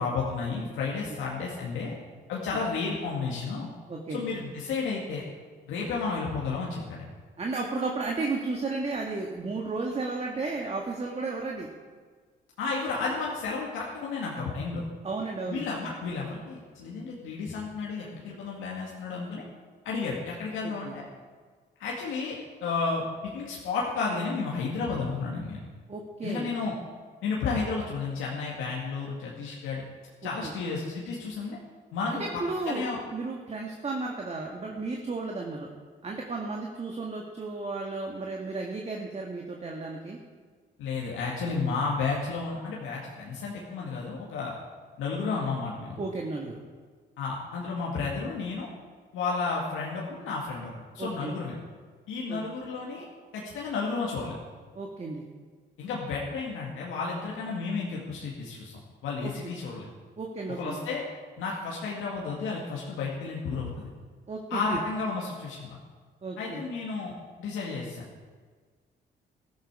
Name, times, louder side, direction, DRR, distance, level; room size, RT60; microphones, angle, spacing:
voice 1, 0.0-2.0 2.3-3.7 4.1-5.2 5.7-7.1 12.6-14.8 15.5-19.4 19.8-21.0 21.8-25.6 26.2-26.7 27.2-29.8 30.2-31.6 31.9-32.2 32.7-33.0 40.8-44.5 45.0-46.0 47.2-48.7 49.1-51.6 52.1-53.1 53.3-54.4 55.8-59.9 60.6-61.0 61.4-63.9 64.5-65.8 66.4-68.1, left 4 dB, 90° left, -4 dB, 2.1 m, -32 dB
voice 2, 3.9-4.2 7.4-11.7 15.0-15.6 20.6-20.9 25.9-26.5 30.4-30.5 32.2-35.7 36.0-40.2 46.0-46.6 51.0-51.3 52.3-52.4 54.7-55.2 59.2-59.5 60.2-60.8 64.3-64.8 66.2-66.6, right 3 dB, 35° right, 0 dB, 1.7 m, -33 dB
14.0 x 13.0 x 4.8 m, 1.5 s
cardioid pair, 90°, 20 cm